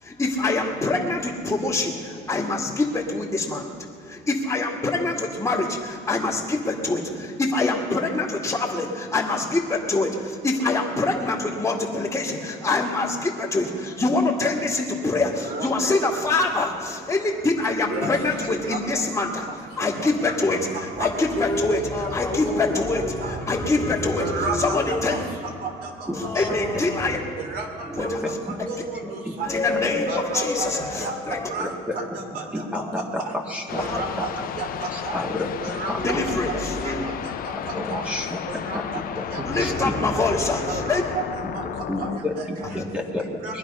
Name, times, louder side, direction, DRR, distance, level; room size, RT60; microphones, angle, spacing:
voice 1, 0.0-3.7 4.0-25.2 26.1-27.2 27.9-28.8 29.4-31.5 33.8-34.0 36.0-37.0 39.4-41.0 42.7-42.8, left 3 dB, 15° left, -4 dB, 2.2 m, -25 dB
voice 2, 15.3-16.5 17.8-18.1 18.4-19.0 19.5-21.1 21.7-22.1 22.7-23.5 24.1-26.5 27.3-29.5 30.1-33.3 33.7-35.2 35.6-38.1 38.5-40.2 40.6-42.8 43.2-43.6, right 4 dB, 65° right, 3 dB, 3.0 m, -34 dB
voice 3, 26.1-26.8 27.8-28.6 29.0-29.1 30.0-30.1 31.3-32.0 32.5-33.8 34.2-34.3 34.9-35.5 35.9-36.4 37.7-40.0 41.4-43.6, left 1 dB, 5° right, 0 dB, 1.9 m, -31 dB
sound 1, 33.7-42.2, left 10 dB, 60° left, 0.6 m, -33 dB
21.5 x 11.0 x 5.7 m, 2.7 s
cardioid pair, 110°, 17 cm